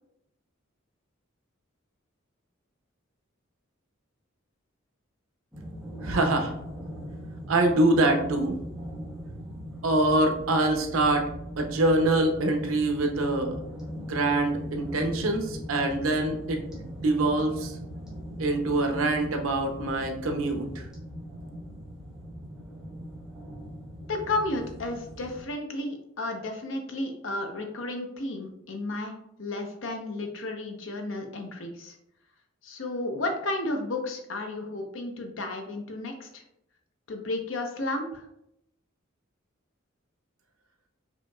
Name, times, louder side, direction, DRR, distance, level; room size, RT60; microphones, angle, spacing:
sound 1, 5.5-25.4, equal, 5° right, 0.9 m, -39 dB
voice 1, 6.0-6.5 7.5-8.5 9.8-11.3 11.6-13.6 14.0-17.8 18.4-20.8, right 2 dB, 90° right, 4 dB, 0.6 m, -25 dB
voice 2, 24.1-32.0 32.6-36.4 37.1-38.3, left 2 dB, 70° left, 4 dB, 0.7 m, -33 dB
5.0 x 2.9 x 2.3 m, 0.79 s
head